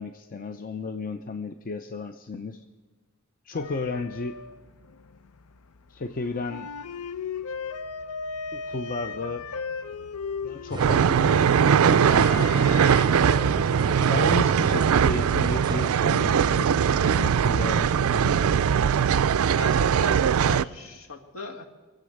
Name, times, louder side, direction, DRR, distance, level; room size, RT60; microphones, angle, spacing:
voice 1, 0.0-2.6 3.5-4.4 5.9-6.7 8.5-9.4 10.4-12.5 13.9-18.6, left 3 dB, 40° left, 7 dB, 0.5 m, -34 dB
sound 1, 3.6-13.7, left 5 dB, 85° left, 0.6 m, -37 dB
sound 2, 10.7-15.9, right 3 dB, 20° right, 0.6 m, -34 dB
sound 3, 10.8-20.6, right 7 dB, 65° right, 0.4 m, -21 dB
voice 2, 19.5-21.6, left 3 dB, 65° left, 4 dB, 1.7 m, -38 dB
23.5 x 7.9 x 6.4 m, 1.4 s
head